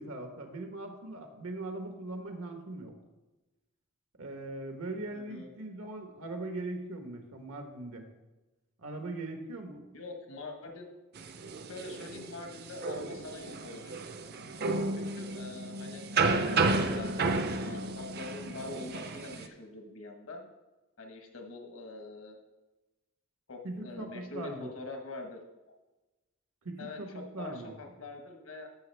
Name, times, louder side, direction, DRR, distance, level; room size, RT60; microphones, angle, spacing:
voice 1, 0.0-2.9 4.2-8.1 8.8-9.9 23.6-24.7 26.6-27.7, right 2 dB, 85° right, 4 dB, 1.2 m, -40 dB
voice 2, 5.1-5.5 9.9-10.9 11.7-14.0 14.9-20.5 21.0-22.4 23.5-25.4 26.8-28.7, left 3 dB, 70° left, 3 dB, 1.3 m, -44 dB
sound 1, 11.2-19.5, right 3 dB, 50° right, 0.6 m, -32 dB
14.0 x 6.1 x 3.4 m, 1.1 s
head